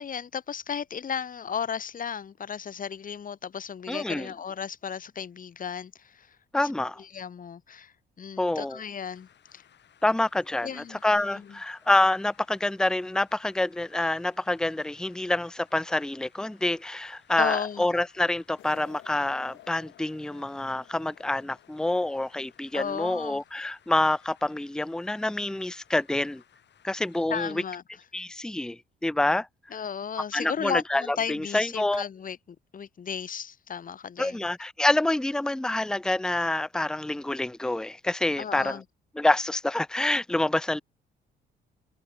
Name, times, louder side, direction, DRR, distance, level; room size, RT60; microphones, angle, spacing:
voice 1, 0.0-6.4 6.6-6.7 7.0-9.6 10.6-11.6 17.4-17.9 22.7-23.4 27.3-27.8 29.7-34.4 38.4-38.8, left 7 dB, 45° left, 1.5 m, -35 dB
voice 2, 3.9-4.3 6.5-7.0 8.4-8.8 10.0-26.4 26.8-27.6 28.1-29.5 30.3-32.0 34.2-38.8 39.2-40.8, left 2 dB, 5° left, 0.6 m, -27 dB
sound 1, 9.0-27.2, left 9 dB, 60° left, 5.7 m, -61 dB
sound 2, 18.6-23.0, left 14 dB, 85° left, 6.1 m, -54 dB
cardioid pair, 90°, 20 cm